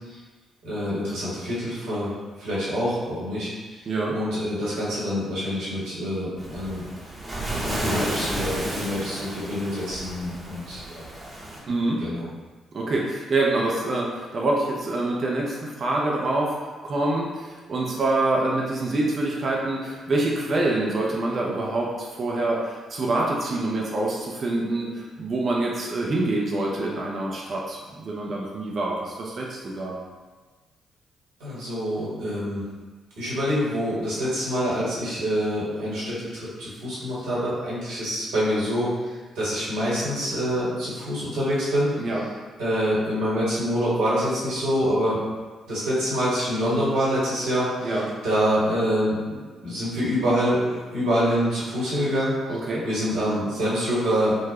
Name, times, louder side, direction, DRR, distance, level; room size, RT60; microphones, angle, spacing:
voice 1, 0.6-3.8 4.1-6.8 7.6-11.0 12.0-12.3 31.4-32.6 33.2-42.0 42.6-45.2 45.7-49.2 49.6-52.3 52.8-54.4, equal, 70° right, -9 dB, 1.2 m, -26 dB
Waves surf, 6.4-11.6, right 1 dB, 25° right, 0.9 m, -32 dB
voice 2, 11.7-12.0 12.7-30.0 42.0-42.2 47.8-48.1 52.5-52.8, right 2 dB, 50° right, -2 dB, 0.5 m, -26 dB
3.8 x 2.1 x 2.8 m, 1.3 s
figure-of-eight pair, 40°, 0 cm